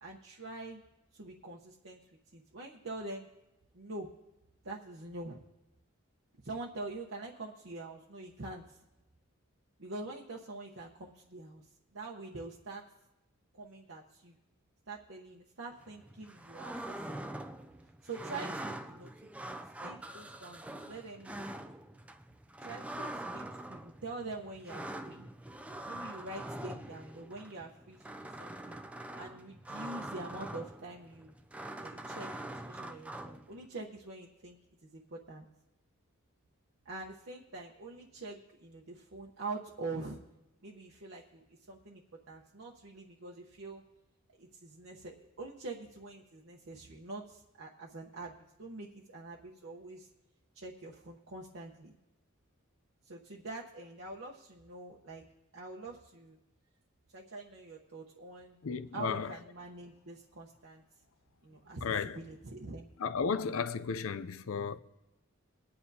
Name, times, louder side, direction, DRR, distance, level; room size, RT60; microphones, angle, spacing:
voice 1, 0.0-0.8 1.1-2.0 2.3-3.3 3.7-4.1 4.6-5.4 6.4-8.8 9.8-12.8 13.5-14.3 14.9-17.3 18.0-19.1 19.8-21.5 22.6-25.3 25.8-28.8 29.1-31.4 31.8-35.4 36.8-40.2 40.6-42.0 42.3-43.8 44.4-50.1 50.5-51.9 53.0-55.3 55.5-56.4 57.1-58.6 58.9-60.8 61.4-62.9, right 2 dB, 65° right, 1.0 m, -45 dB
sound 1, 15.8-33.7, right 1 dB, 5° right, 0.3 m, -44 dB
voice 2, 58.6-59.3 61.8-62.2 63.0-64.8, left 5 dB, 75° left, 0.5 m, -34 dB
21.0 x 9.5 x 2.8 m
head